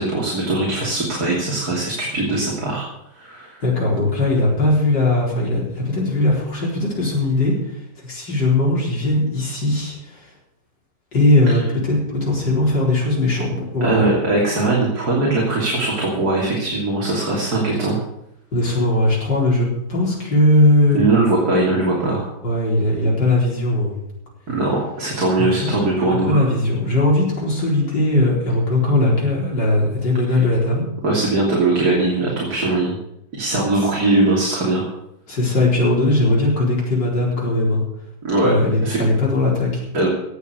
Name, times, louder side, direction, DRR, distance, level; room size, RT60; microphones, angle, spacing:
voice 1, 0.0-2.9 3.2-3.6 11.5-11.6 13.8-18.0 20.9-22.3 24.5-26.5 31.0-33.0 33.3-34.9 38.2-38.5 38.8-39.0 39.9-40.1, right 2 dB, 65° right, -4 dB, 3.6 m, -20 dB
voice 2, 3.6-7.7 8.0-10.2 11.1-14.1 18.5-21.0 22.4-23.9 25.4-25.7 26.0-30.8 33.8-33.9 35.3-37.8 38.4-39.8, left 2 dB, 85° left, -3 dB, 5.0 m, -19 dB
17.5 x 6.9 x 8.0 m, 0.79 s
omnidirectional pair, 1.8 m